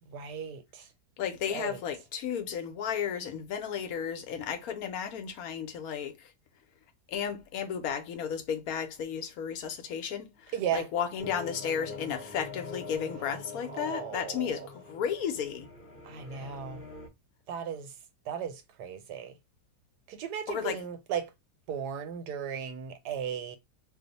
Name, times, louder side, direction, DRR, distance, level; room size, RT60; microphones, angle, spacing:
voice 1, 0.1-0.9 1.5-1.8 10.5-10.9 13.7-14.7 16.0-16.8 17.5-17.9 18.3-19.3 20.1-21.3 21.7-23.6, right 8 dB, 90° right, 1.3 m, -36 dB
voice 2, 1.2-6.3 7.1-15.7 16.3-16.5 20.5-20.8, left 8 dB, 70° left, 1.0 m, -34 dB
sound 1, 11.2-17.1, left 3 dB, 15° left, 0.4 m, -44 dB
2.9 x 2.1 x 3.9 m
omnidirectional pair, 1.7 m